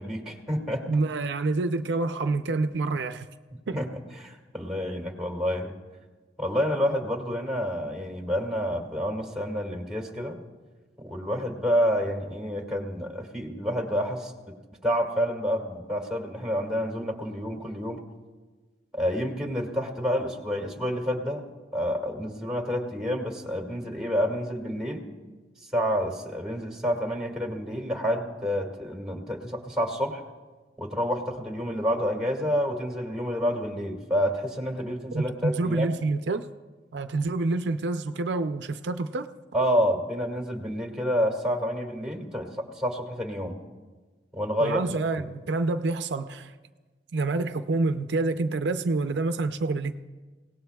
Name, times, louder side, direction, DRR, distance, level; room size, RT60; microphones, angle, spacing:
voice 1, 0.0-0.9 3.7-3.9 4.2-5.7 6.4-10.4 11.0-14.3 14.8-18.0 18.9-21.4 21.7-25.1 25.7-30.2 30.8-35.9 39.5-43.6 44.3-44.8 45.2-45.3, equal, 5° right, 2.0 m, -28 dB
voice 2, 0.9-3.3 3.7-3.8 35.1-36.5 36.9-39.3 44.6-46.5 47.1-49.9, right 3 dB, 75° right, 0.5 m, -27 dB
28.5 x 18.0 x 2.3 m
head